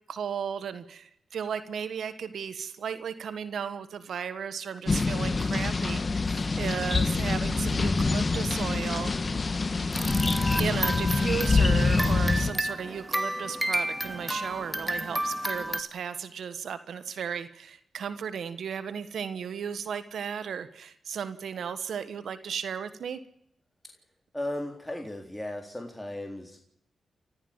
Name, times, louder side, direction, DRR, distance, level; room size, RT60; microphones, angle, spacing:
voice 1, 0.1-9.1 10.5-23.2, right 7 dB, 80° right, 12 dB, 1.4 m, -35 dB
sound 1, 4.9-12.5, left 3 dB, 45° left, 1.6 m, -25 dB
sound 2, 9.9-15.8, right 1 dB, 10° right, 2.5 m, -32 dB
voice 2, 24.3-26.6, left 1 dB, 10° left, 2 dB, 3.8 m, -36 dB
29.5 x 14.5 x 7.2 m, 0.76 s
cardioid pair, 55°, 0 cm